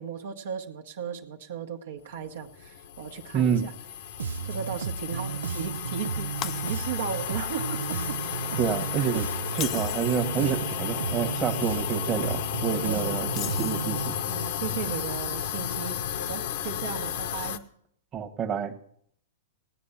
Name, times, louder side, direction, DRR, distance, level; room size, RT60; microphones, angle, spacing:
voice 1, 0.0-3.7 4.4-8.6 9.0-9.2 12.8-13.2 14.3-17.6, right 7 dB, 70° right, 4 dB, 1.3 m, -36 dB
sound 1, 2.4-17.6, left 10 dB, 60° left, 1.0 m, -33 dB
voice 2, 3.3-3.7 8.6-14.2 18.1-18.8, right 8 dB, 30° right, 4 dB, 1.4 m, -28 dB
Bass guitar, 4.2-14.1, right 6 dB, 85° right, 0.6 m, -34 dB
Shatter, 6.4-7.2 7.6-7.8 9.4-10.3 13.3-14.2, left 11 dB, 35° left, 0.6 m, -37 dB
17.0 x 9.7 x 5.7 m, 0.66 s
hypercardioid pair, 120°, 0 cm